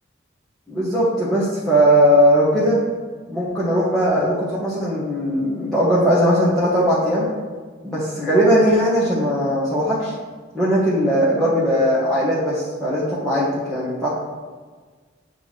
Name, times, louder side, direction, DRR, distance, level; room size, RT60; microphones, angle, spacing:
voice 1, 0.7-2.8 3.3-7.3 7.8-10.1 10.5-14.1, equal, 5° left, -11 dB, 1.2 m, -19 dB
7.9 x 3.3 x 4.1 m, 1.5 s
head